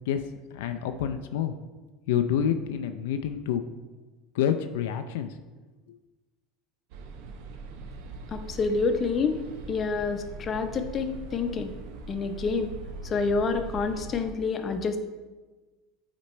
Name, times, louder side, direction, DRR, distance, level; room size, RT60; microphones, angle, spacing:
voice 1, 0.5-1.5 2.1-3.6 4.4-5.3, left 9 dB, 85° left, 8 dB, 0.4 m, -27 dB
sound 1, 6.9-14.3, right 3 dB, 70° right, 0.7 m, -41 dB
voice 2, 8.3-9.4 9.7-11.7 12.1-12.7 13.0-15.0, left 4 dB, 35° left, 7 dB, 0.6 m, -28 dB
8.5 x 3.0 x 4.3 m, 1.2 s
supercardioid pair, 115°, 0 cm